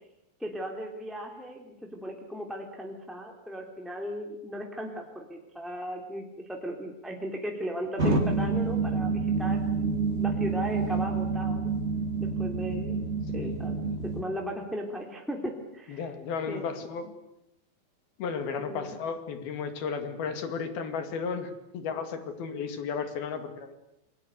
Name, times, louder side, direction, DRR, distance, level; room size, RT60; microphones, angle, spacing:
voice 1, 0.4-11.7 12.2-13.0 13.3-16.0 16.5-16.7 18.6-19.0, equal, ahead, 1 dB, 2.3 m, -37 dB
sound 1, 8.0-14.2, right 4 dB, 15° right, 3.3 m, -28 dB
voice 2, 15.9-17.1 18.2-23.8, left 5 dB, 65° left, 8 dB, 3.9 m, -34 dB
28.5 x 22.5 x 8.1 m, 0.85 s
omnidirectional pair, 4.9 m